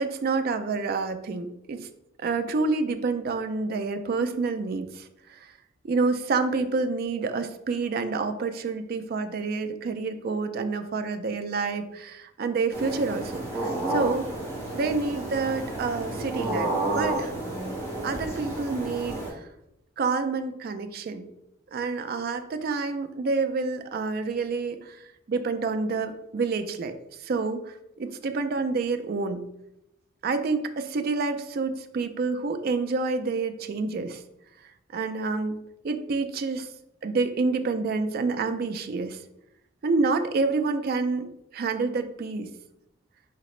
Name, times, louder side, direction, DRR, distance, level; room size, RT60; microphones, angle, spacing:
voice 1, 0.0-1.9 2.2-5.5 5.8-14.3 14.7-17.3 18.0-19.5 20.0-21.3 21.7-29.5 30.2-34.2 34.9-35.6 35.8-36.7 37.0-39.2 39.8-42.5, right 4 dB, 45° right, 8 dB, 0.3 m, -28 dB
sound 1, 12.7-19.3, right 2 dB, 15° left, 1.5 m, -31 dB
5.0 x 2.8 x 3.1 m, 0.84 s
head